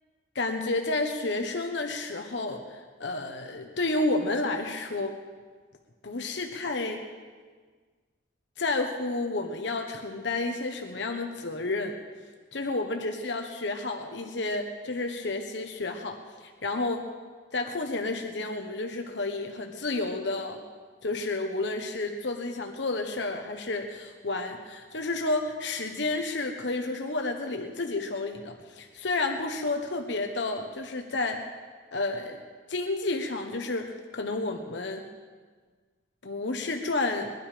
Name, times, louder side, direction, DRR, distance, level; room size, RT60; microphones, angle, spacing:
voice 1, 0.3-5.2 6.0-7.0 8.6-12.0 12.5-17.0 17.5-20.6 21.0-31.4 31.9-32.4 32.7-35.0 36.2-37.3, left 2 dB, 65° left, 4 dB, 1.1 m, -31 dB
21.0 x 12.0 x 5.1 m, 1.5 s
head